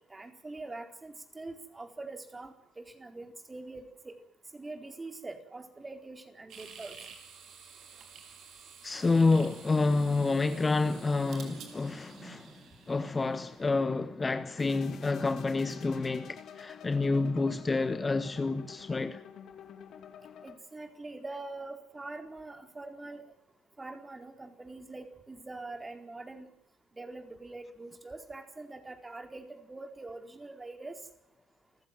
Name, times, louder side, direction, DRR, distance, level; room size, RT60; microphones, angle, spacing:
voice 1, 0.0-4.1 4.5-6.9 20.4-23.2 23.8-26.5 27.0-31.0, right 2 dB, 20° right, 4.3 m, -44 dB
sound 1, 6.5-13.8, right 6 dB, 55° right, 5.1 m, -51 dB
voice 2, 8.8-12.5 12.9-19.2, left 3 dB, 25° left, 1.3 m, -28 dB
sound 2, 14.6-20.5, left 8 dB, 55° left, 3.1 m, -49 dB
29.5 x 15.5 x 7.7 m
hypercardioid pair, 60°, 0 cm